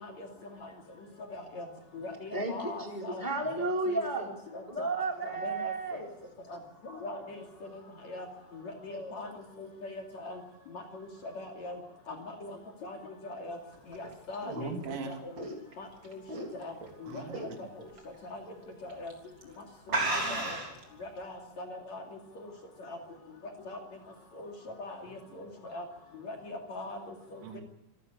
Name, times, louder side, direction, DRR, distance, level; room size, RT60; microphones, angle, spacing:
voice 1, 1.3-1.7 1.9-3.2 3.9-4.9 5.4-6.1 6.5-6.6 6.9-7.4 8.1-8.3 8.5-9.3 9.6-10.4 10.7-11.8 12.1-12.2 12.4-12.5 12.8-13.0 13.2-13.6 13.9-14.7 15.1-15.3 15.8-16.2 16.6-16.7 17.0-17.5 18.3-18.4 18.8-19.1 20.3-20.5 21.0-22.0 22.9-23.0 23.6-23.8 24.4-24.5 24.8-25.8 26.2-27.0, left 2 dB, 45° left, 2 dB, 3.3 m, -41 dB
voice 2, 2.3-4.3 4.7-6.1, right 2 dB, 10° left, 1 dB, 2.6 m, -32 dB
sound 1, 13.7-16.9 17.3-17.6 18.0-18.1 18.9-19.1 19.4-19.5 19.9-20.8, right 2 dB, 25° right, 3.7 m, -33 dB
voice 3, 14.5-15.2 17.0-17.7 19.9-20.5 25.3-25.4 27.4-27.6, right 4 dB, 85° right, 4 dB, 5.2 m, -41 dB
26.5 x 14.0 x 8.6 m, 0.83 s
omnidirectional pair, 5.5 m